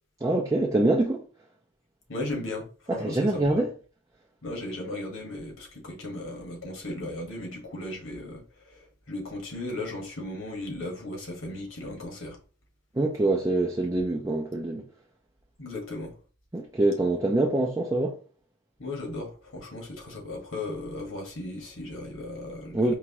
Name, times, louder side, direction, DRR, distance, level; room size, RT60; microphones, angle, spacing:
voice 1, 0.2-1.2 2.9-3.7 12.9-14.8 16.5-18.2 22.7-22.9, right 2 dB, 15° right, 0.4 m, -25 dB
voice 2, 2.1-3.6 4.4-12.4 15.6-16.2 18.8-22.9, left 2 dB, 70° left, 1.6 m, -36 dB
4.6 x 3.0 x 3.0 m
head